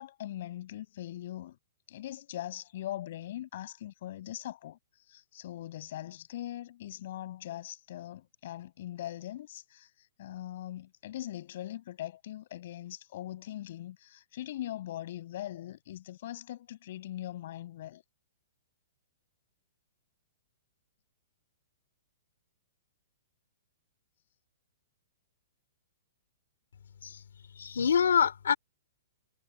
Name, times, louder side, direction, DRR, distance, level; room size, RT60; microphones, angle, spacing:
voice 1, 0.0-1.6 1.9-4.8 5.1-9.9 10.2-18.0, left 13 dB, 55° left, 7.5 m, -41 dB
voice 2, 27.6-28.5, left 7 dB, 85° left, 3.8 m, -25 dB
hypercardioid pair, 145°, 0 cm